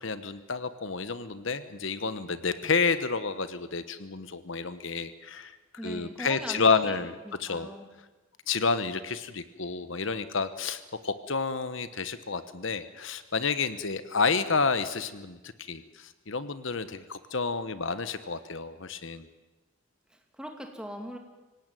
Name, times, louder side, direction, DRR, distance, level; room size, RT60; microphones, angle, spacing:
voice 1, 0.0-5.6 5.8-7.1 7.4-7.7 8.5-19.2, left 4 dB, 65° left, 12 dB, 1.1 m, -30 dB
voice 2, 5.8-6.9 7.2-7.9 20.1-21.2, equal, 5° right, 3 dB, 2.6 m, -40 dB
25.5 x 17.5 x 9.2 m, 1.2 s
head